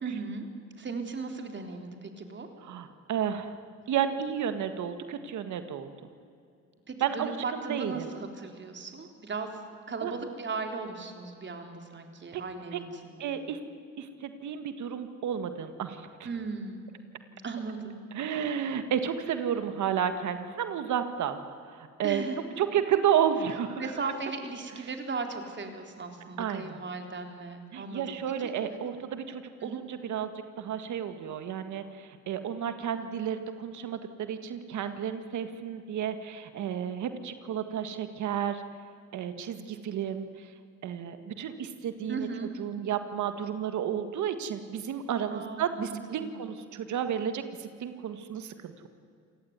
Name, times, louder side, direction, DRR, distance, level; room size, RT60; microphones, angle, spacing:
voice 1, 0.0-2.5 6.9-9.6 9.9-13.2 16.2-16.9 17.4-18.0 22.0-22.4 23.8-28.2 28.4-28.5 29.6-29.8 42.1-42.5 45.3-46.4, right 4 dB, 40° right, 5 dB, 3.8 m, -37 dB
voice 2, 2.6-3.6 3.9-5.9 7.0-8.1 10.0-10.1 12.3-12.4 12.7-12.8 13.2-13.6 14.0-16.3 18.1-21.4 21.6-22.2 22.6-24.0 26.4-26.8 27.7-30.3 30.6-38.6 39.1-40.5 40.8-42.3 42.6-48.9, right 9 dB, 75° right, 9 dB, 1.8 m, -32 dB
27.5 x 18.5 x 9.6 m, 2.4 s
cardioid pair, 90°, 30 cm